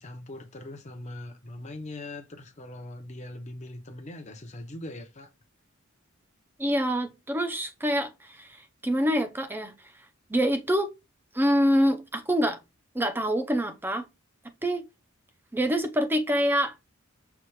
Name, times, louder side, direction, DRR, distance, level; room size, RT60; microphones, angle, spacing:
voice 1, 0.0-5.3, left 1 dB, 35° left, 0.8 m, -41 dB
voice 2, 6.6-8.6 8.8-9.7 10.3-10.9 11.3-12.6 12.9-14.1 14.6-14.8 15.5-16.7, equal, 10° right, 0.6 m, -25 dB
5.9 x 2.4 x 3.1 m
head